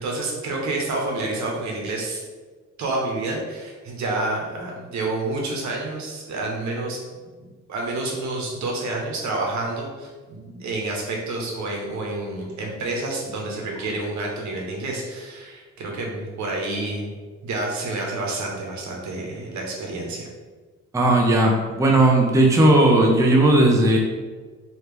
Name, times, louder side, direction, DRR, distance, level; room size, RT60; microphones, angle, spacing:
voice 1, 0.0-2.2 2.8-7.0 7.4-17.1 17.4-20.3, right 2 dB, 70° right, -1 dB, 1.0 m, -29 dB
voice 2, 20.9-24.0, right 1 dB, 10° right, 0 dB, 0.5 m, -16 dB
3.2 x 2.9 x 3.2 m, 1.4 s
cardioid pair, 90°, 30 cm